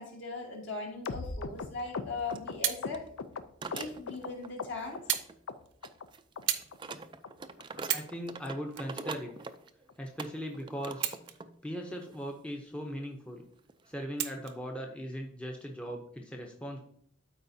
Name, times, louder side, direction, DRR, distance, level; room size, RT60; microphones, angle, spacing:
voice 1, 0.0-3.0 3.7-5.0, left 3 dB, 60° left, -1 dB, 2.4 m, -39 dB
sound 1, 1.0-4.3 4.6-5.2 5.5-6.1 6.4-6.5 6.7-6.9 7.2-7.3 7.6-7.8 8.1-8.2 8.5-8.7 9.0-9.1 9.4-9.6 9.9-10.0 10.2-10.4 10.8-10.9, left 4 dB, 75° left, 0.5 m, -39 dB
sound 2, 1.8-1.9 2.3-2.4 2.8-3.1 3.6-4.5 4.8-5.5 5.8-11.6 11.9-12.2 12.9-13.0 13.6-13.9, right 4 dB, 25° right, 0.4 m, -44 dB
sound 3, 2.5-2.9 3.8-3.9 5.1-5.3 5.7-5.9 6.5-6.7 7.3-7.4 7.8-8.2 8.7-9.7 10.9-11.6 12.0-12.1 14.2-14.6 15.5-15.6, right 11 dB, 60° right, 0.7 m, -34 dB
voice 2, 7.9-9.3 10.0-11.2 11.6-13.4 13.9-16.8, equal, 5° left, 1 dB, 0.7 m, -39 dB
12.5 x 4.8 x 2.7 m, 0.64 s
head